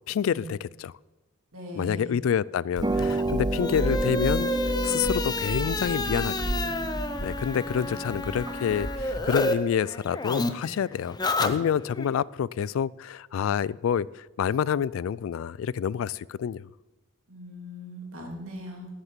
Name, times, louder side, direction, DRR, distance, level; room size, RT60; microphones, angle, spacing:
voice 1, 0.1-0.9 1.7-4.5 4.8-6.8 7.2-16.7, left 8 dB, 75° left, 0.3 m, -28 dB
voice 2, 1.5-2.2 7.8-8.3 17.3-18.9, left 1 dB, 85° right, 2.7 m, -40 dB
Harp, 2.8-9.5, right 2 dB, 20° right, 0.6 m, -30 dB
sound 1, 2.9-9.5 9.8-12.1, left 2 dB, 20° left, 0.6 m, -30 dB
11.5 x 6.6 x 7.4 m
head